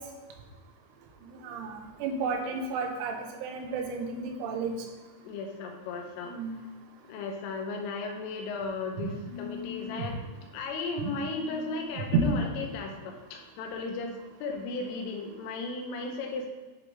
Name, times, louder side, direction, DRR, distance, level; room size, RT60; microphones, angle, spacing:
voice 1, 1.4-3.2 3.4-4.7 6.3-6.6 9.0-10.1 11.0-11.1 11.4-11.8 12.1-12.4, right 3 dB, 80° right, 3 dB, 3.2 m, -32 dB
voice 2, 5.2-6.4 7.1-16.5, left 3 dB, 85° left, 3 dB, 3.4 m, -35 dB
11.0 x 4.0 x 3.4 m, 1.2 s
omnidirectional pair, 5.7 m